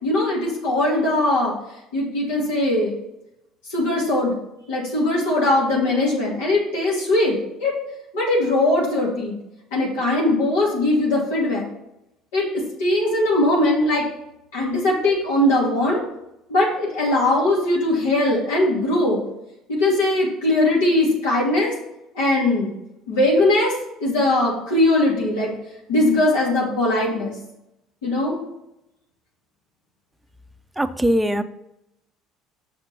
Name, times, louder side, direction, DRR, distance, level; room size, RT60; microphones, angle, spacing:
voice 1, 0.0-1.5 1.9-2.9 3.7-4.3 4.7-7.7 8.1-9.4 9.7-11.7 12.3-14.0 14.5-16.0 16.5-19.2 19.7-21.7 22.2-22.7 23.1-23.7 24.0-25.5 25.9-27.3 28.0-28.4, left 1 dB, 80° left, -5 dB, 2.6 m, -20 dB
voice 2, 30.8-31.4, equal, 10° right, 11 dB, 0.6 m, -20 dB
6.5 x 5.1 x 5.4 m, 0.86 s
hypercardioid pair, 70°, 0 cm